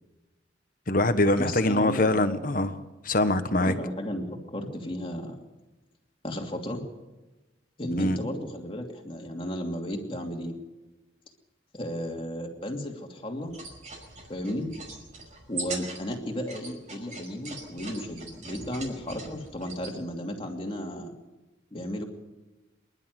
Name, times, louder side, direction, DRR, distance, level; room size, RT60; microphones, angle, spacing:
voice 1, 0.9-2.8 3.0-3.7 8.0-8.2, left 2 dB, 45° left, 10 dB, 1.3 m, -23 dB
voice 2, 1.4-2.4 3.6-5.4 6.2-6.8 7.8-10.5 11.7-13.5 14.3-14.7 15.5-21.1 21.7-22.0, equal, 30° left, 2 dB, 2.7 m, -34 dB
sound 1, 13.4-19.9, right 3 dB, 40° right, 5.4 m, -41 dB
26.0 x 11.5 x 9.6 m, 1.1 s
head